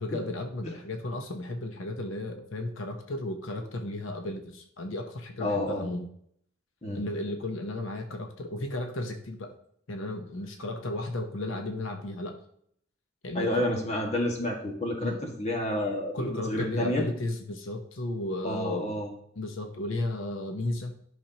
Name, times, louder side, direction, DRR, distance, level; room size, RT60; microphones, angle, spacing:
voice 1, 0.0-6.1 6.9-9.5 9.9-12.4 13.2-13.8 15.0-15.2 16.1-18.9 19.4-20.9, left 2 dB, 90° left, 5 dB, 0.9 m, -34 dB
voice 2, 5.4-5.9 6.8-7.0 13.3-17.0 18.4-19.1, left 1 dB, 35° left, 0 dB, 1.8 m, -30 dB
11.5 x 6.1 x 2.9 m, 0.66 s
head